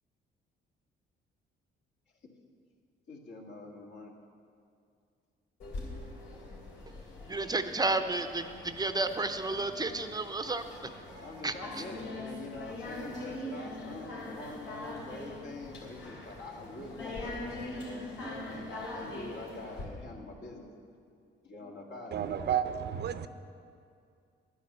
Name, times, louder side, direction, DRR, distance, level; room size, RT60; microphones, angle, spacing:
voice 1, 3.1-4.1 10.7-10.8 11.2-17.9 18.5-20.7 21.4-22.3, left 2 dB, 65° left, -1 dB, 2.1 m, -45 dB
sound 1, 5.6-19.8, left 1 dB, 85° left, 3.0 m, -42 dB
voice 2, 7.3-10.9 11.4-11.8, right 2 dB, 20° right, 9 dB, 0.6 m, -32 dB
voice 3, 22.1-23.3, right 9 dB, 60° right, 11 dB, 0.6 m, -31 dB
10.5 x 9.5 x 6.7 m, 2.3 s
cardioid pair, 90°, 20 cm